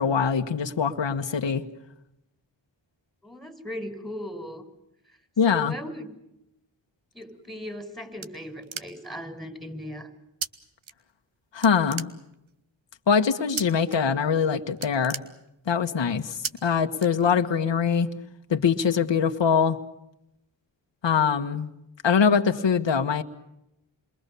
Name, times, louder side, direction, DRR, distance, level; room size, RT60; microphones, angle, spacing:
voice 1, 0.0-1.6 5.4-5.7 11.5-12.1 13.1-15.2 15.7-18.1 18.5-19.8 21.0-21.7 22.0-23.2, left 6 dB, 65° left, 5 dB, 1.6 m, -23 dB
voice 2, 3.2-4.6 5.4-6.1 7.1-10.1, equal, ahead, 9 dB, 5.7 m, -37 dB
sound 1, 7.5-9.2 10.4-10.5 10.8-11.3 11.6-12.6 13.6-14.0 14.3-14.4 14.7-15.9 16.4-16.5 17.0-17.6, right 7 dB, 80° right, 1.5 m, -35 dB
28.5 x 22.5 x 7.0 m, 0.85 s
cardioid pair, 50°, 47 cm